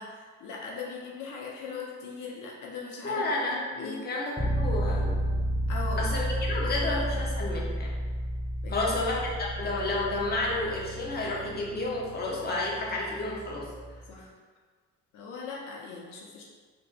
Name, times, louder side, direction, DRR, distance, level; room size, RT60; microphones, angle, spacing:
voice 1, 0.0-4.1 5.7-6.1 6.5-7.2 8.6-8.9 14.1-14.3 15.1-16.4, left 4 dB, 80° left, -2 dB, 0.5 m, -40 dB
voice 2, 3.0-5.3 6.0-7.9 8.7-13.7, left 2 dB, 30° left, -4 dB, 0.8 m, -31 dB
sound 1, 4.4-14.1, equal, 5° right, 0.3 m, -32 dB
3.3 x 2.5 x 2.5 m, 1.5 s
cardioid pair, 90°, 30 cm